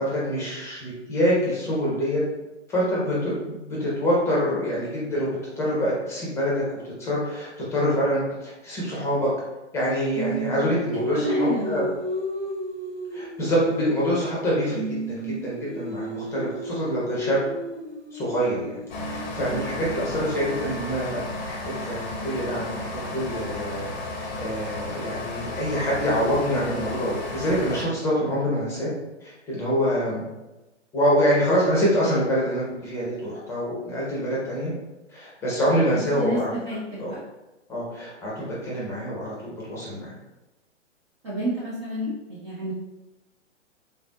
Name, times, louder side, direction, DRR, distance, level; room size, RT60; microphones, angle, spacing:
voice 1, 0.0-2.2 2.7-5.3 5.6-9.3 9.7-11.8 13.1-14.8 15.1-17.4 18.1-18.8 19.0-22.9 23.1-28.9 29.2-30.2 30.9-34.7 35.1-36.5 37.0-37.1 37.7-40.1, equal, 5° left, -6 dB, 0.8 m, -25 dB
Singing, 10.2-14.5 14.7-20.7, right 1 dB, 65° right, 1.0 m, -33 dB
voice 2, 11.1-11.9 19.4-19.6 35.9-37.2 41.2-42.7, equal, 25° right, -7 dB, 0.5 m, -30 dB
sound 1, 18.9-27.8, left 1 dB, 40° left, 0.7 m, -33 dB
4.2 x 3.5 x 2.3 m, 1.0 s
figure-of-eight pair, 120°, 36 cm